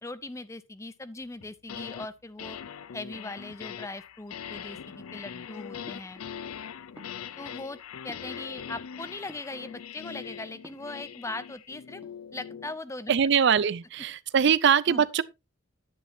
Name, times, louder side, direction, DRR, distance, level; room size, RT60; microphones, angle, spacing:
voice 1, 0.0-2.6 2.9-6.2 7.4-7.8 8.0-12.0 12.3-13.2 14.9-15.0, left 2 dB, 15° left, 0.5 m, -40 dB
sound 1, 1.4-2.1 2.4-12.8, left 8 dB, 85° left, 0.5 m, -42 dB
sound 2, 5.8-6.6 6.9-8.9 9.2-10.0 10.6-11.6 11.9-12.4, equal, 5° right, 1.3 m, -55 dB
voice 2, 13.1-15.2, right 7 dB, 55° right, 0.4 m, -22 dB
9.9 x 9.3 x 2.6 m
head